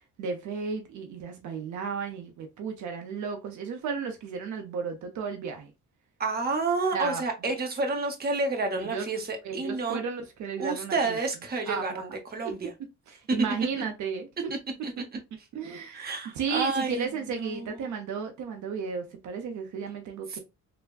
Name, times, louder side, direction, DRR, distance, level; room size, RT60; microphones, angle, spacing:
voice 1, 0.2-5.7 6.9-7.2 8.7-9.1 9.4-11.2 11.7-12.1 12.4-12.5 13.1-14.5 15.5-20.4, right 6 dB, 75° right, 0.7 m, -34 dB
voice 2, 6.2-10.0 10.6-12.7 14.8-14.9 15.9-18.0 20.3-20.4, right 3 dB, 30° right, 0.9 m, -30 dB
3.4 x 2.1 x 2.3 m
cardioid pair, 90°, 30 cm